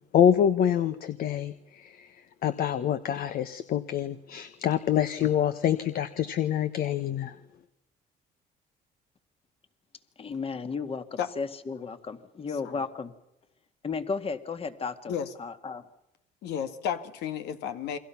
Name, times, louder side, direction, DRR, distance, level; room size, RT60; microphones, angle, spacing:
voice 1, 0.1-2.1 2.4-7.4, left 9 dB, 60° left, 11 dB, 1.3 m, -26 dB
voice 2, 10.2-13.1 13.8-15.1 15.4-15.8, left 5 dB, 35° left, 9 dB, 2.0 m, -34 dB
voice 3, 16.4-18.0, left 8 dB, 80° left, 9 dB, 1.9 m, -32 dB
29.5 x 23.0 x 5.9 m, 0.84 s
cardioid pair, 110°, 17 cm